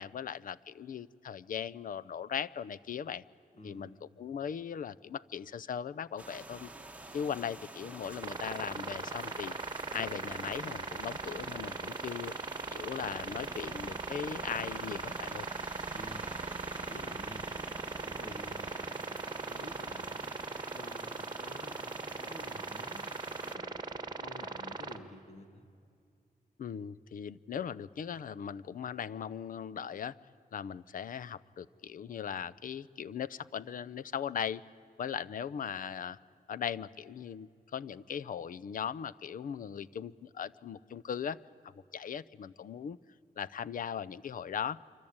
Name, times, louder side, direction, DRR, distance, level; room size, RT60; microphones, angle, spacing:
voice 1, 0.0-3.2 3.6-6.7 7.1-9.6 9.9-12.3 12.7-15.5 26.6-30.2 30.5-34.6 35.0-36.2 36.5-41.4 41.6-43.0 43.4-44.8, left 8 dB, 65° left, 17 dB, 0.6 m, -39 dB
voice 2, 3.5-4.0 15.9-17.5 17.9-20.2 20.8-23.3 23.5-25.7, left 1 dB, 45° left, 8 dB, 2.3 m, -51 dB
sound 1, 6.2-23.6, right 2 dB, 10° right, 1.6 m, -47 dB
sound 2, 8.2-25.0, right 4 dB, 25° right, 1.5 m, -39 dB
26.5 x 25.0 x 8.8 m, 2.4 s
wide cardioid pair, 135°, 15 cm